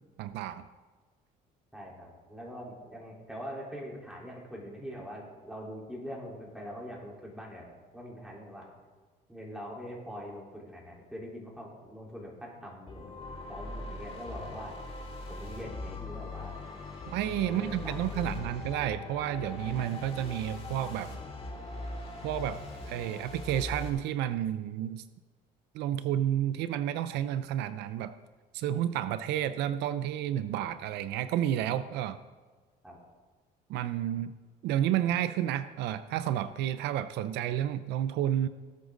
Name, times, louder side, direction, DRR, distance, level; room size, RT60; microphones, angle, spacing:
voice 1, 0.2-0.7 17.1-21.1 22.2-25.0 25.7-28.1 28.5-32.2 33.7-34.3 34.6-38.5, right 11 dB, 90° right, 13 dB, 0.6 m, -31 dB
voice 2, 1.7-7.7 7.9-8.7 9.3-13.1 13.5-14.8 15.3-16.6 17.5-18.5 32.8-33.0, equal, 5° right, -3 dB, 3.8 m, -43 dB
sound 1, 12.9-23.9, left 3 dB, 35° left, 4.6 m, -41 dB
19.0 x 8.2 x 3.9 m, 1.4 s
cardioid pair, 110°, 17 cm